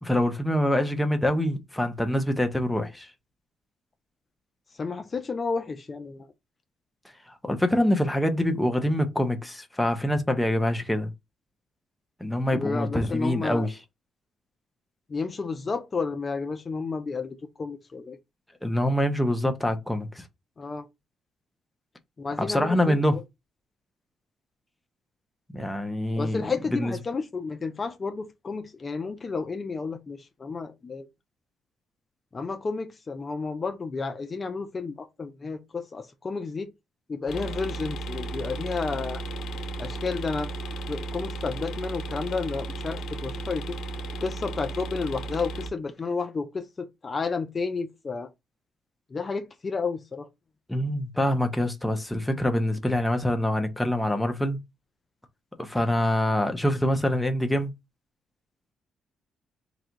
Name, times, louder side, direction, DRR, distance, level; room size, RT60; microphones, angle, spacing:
voice 1, 0.0-3.1 7.4-11.1 12.2-13.7 18.6-20.2 22.4-23.2 25.5-26.4 26.7-26.9 50.7-54.6 55.6-57.7, left 1 dB, 5° left, 0.9 m, -25 dB
voice 2, 4.7-6.3 12.5-13.7 15.1-18.2 20.6-20.9 22.2-23.2 26.2-31.1 32.3-36.7 37.1-39.2 39.8-40.5 40.9-43.8 44.2-48.3 49.1-50.3, left 4 dB, 35° left, 0.6 m, -31 dB
sound 1, 37.3-45.7, right 2 dB, 70° left, 1.1 m, -34 dB
3.9 x 2.3 x 4.5 m
cardioid pair, 90°, 0 cm